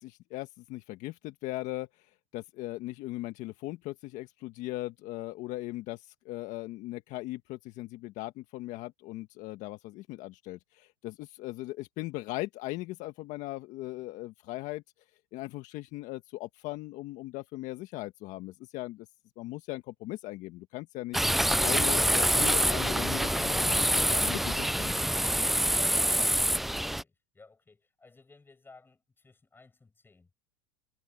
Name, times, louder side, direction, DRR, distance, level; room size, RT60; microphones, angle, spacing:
voice 1, 0.0-14.8 15.3-19.1 19.4-21.2 21.6-25.0, left 18 dB, 55° left, 1.6 m, -39 dB
sound 1, 21.1-27.0, equal, ahead, 0.3 m, -26 dB
voice 2, 25.3-30.5, left 3 dB, 15° left, 6.7 m, -57 dB
supercardioid pair, 105°, 15 cm